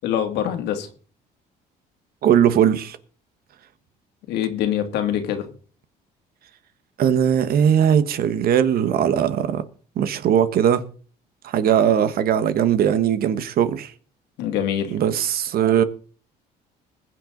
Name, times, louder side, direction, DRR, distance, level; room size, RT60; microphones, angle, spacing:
voice 1, 0.0-0.9 4.3-5.5 14.4-14.9, left 10 dB, 85° left, 2.4 m, -24 dB
voice 2, 2.2-3.0 7.0-9.6 10.0-10.8 11.4-13.9 14.9-15.8, right 9 dB, 60° right, 1.3 m, -19 dB
21.0 x 7.9 x 3.9 m
cardioid pair, 110°, 17 cm